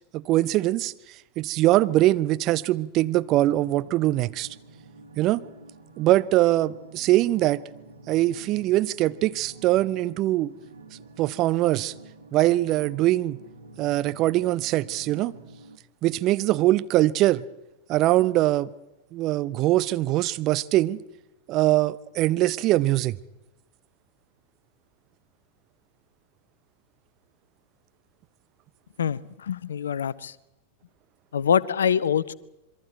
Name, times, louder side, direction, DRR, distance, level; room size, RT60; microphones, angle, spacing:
voice 1, 0.1-0.9 1.4-4.5 5.2-5.4 6.0-7.6 8.1-10.5 11.2-11.9 12.3-13.4 13.8-15.3 16.0-17.4 17.9-18.7 19.1-21.0 21.5-23.2, right 16 dB, 35° right, 0.7 m, -22 dB
sound 1, 3.2-15.8, right 3 dB, 80° right, 2.1 m, -48 dB
voice 2, 29.0-30.3 31.3-32.3, left 8 dB, 65° left, 0.7 m, -25 dB
27.0 x 23.0 x 4.5 m
figure-of-eight pair, 90°, 0 cm